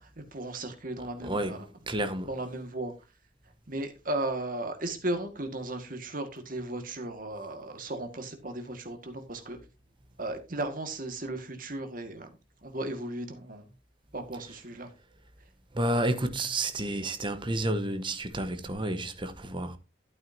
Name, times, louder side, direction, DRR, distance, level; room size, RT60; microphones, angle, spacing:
voice 1, 0.0-1.7 2.3-2.9 3.7-9.6 10.2-12.3 12.6-13.7 14.1-14.9, right 1 dB, 45° right, 1.8 m, -35 dB
voice 2, 1.2-1.6 1.9-2.3 15.7-19.8, right 1 dB, 25° right, 1.1 m, -30 dB
12.0 x 8.6 x 2.7 m
head